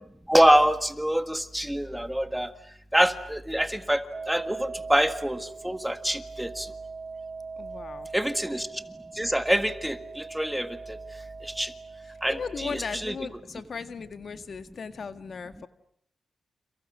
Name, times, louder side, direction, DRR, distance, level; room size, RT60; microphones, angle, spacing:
voice 1, 0.3-2.5 2.9-6.7 8.1-8.7 9.2-11.0 11.4-11.7 12.2-13.1, equal, 5° right, 9 dB, 1.8 m, -25 dB
sound 1, 4.1-12.7, right 4 dB, 35° right, 1.3 m, -41 dB
voice 2, 7.6-8.1 12.3-15.7, left 5 dB, 55° left, 9 dB, 1.7 m, -37 dB
29.5 x 29.5 x 6.5 m, 0.71 s
wide cardioid pair, 105°, 0 cm